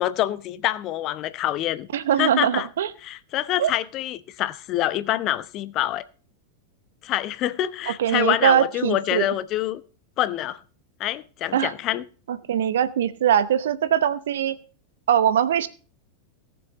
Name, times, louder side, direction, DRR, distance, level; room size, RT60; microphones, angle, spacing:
voice 1, 0.0-1.9 2.2-2.7 3.0-6.0 7.0-9.8 10.2-10.6 11.0-12.0, left 13 dB, 35° left, 0.7 m, -26 dB
voice 2, 1.9-2.9 3.6-3.7 8.0-9.3 11.5-11.7 12.3-14.6 15.1-15.7, right 10 dB, 60° right, 0.8 m, -21 dB
18.0 x 7.1 x 3.9 m
figure-of-eight pair, 90°, 0 cm